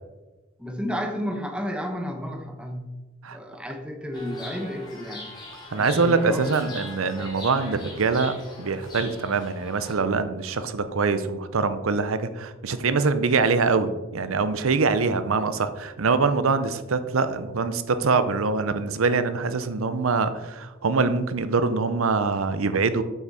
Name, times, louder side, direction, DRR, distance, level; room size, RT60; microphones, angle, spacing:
voice 1, 0.6-2.8 3.3-5.3 5.7-6.7, equal, 5° right, 4 dB, 0.9 m, -32 dB
Chirp tweet, 4.1-9.9, left 2 dB, 20° left, 2.4 m, -41 dB
voice 2, 5.7-23.0, right 4 dB, 80° right, 12 dB, 0.6 m, -24 dB
7.9 x 6.0 x 4.1 m, 1.2 s
head